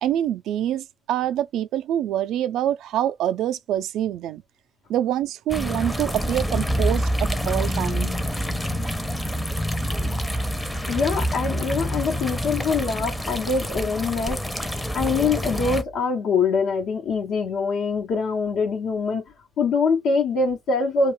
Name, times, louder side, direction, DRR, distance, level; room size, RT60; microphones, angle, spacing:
voice 1, 0.0-4.4 4.9-8.1, right 11 dB, 85° right, 0.3 m, -25 dB
sound 1, 5.5-15.8, equal, 5° left, 0.5 m, -27 dB
voice 2, 10.9-19.2 19.6-21.1, left 4 dB, 85° left, 1.0 m, -24 dB
2.3 x 2.0 x 3.1 m
cardioid pair, 90°, 0 cm